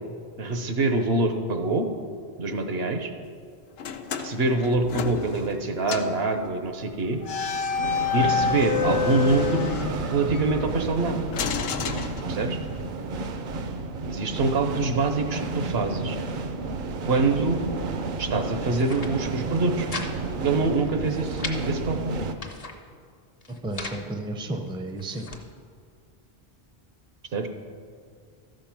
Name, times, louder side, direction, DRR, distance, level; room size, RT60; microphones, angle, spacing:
voice 1, 0.4-1.9 2.4-3.1 4.2-7.2 8.1-9.7 10.1-11.2 12.3-12.6 14.1-16.2 17.1-17.6 18.2-19.9 20.4-22.2 27.3-27.5, right 3 dB, 75° right, 6 dB, 1.1 m, -25 dB
sound 1, 3.8-5.6 5.9-6.2 7.2-10.4 11.3-12.7, left 6 dB, 80° left, 0.9 m, -29 dB
sound 2, 6.5-22.3, right 3 dB, 60° right, 0.7 m, -32 dB
sound 3, 18.7-19.1 19.5-20.1 20.4-20.5 20.9-21.6 22.1-22.8 23.4-24.0 24.7-25.4, left 3 dB, 40° left, 0.9 m, -38 dB
voice 2, 23.6-25.3, right 2 dB, 5° right, 5 dB, 0.5 m, -32 dB
13.5 x 5.3 x 5.9 m, 2.1 s
omnidirectional pair, 1.0 m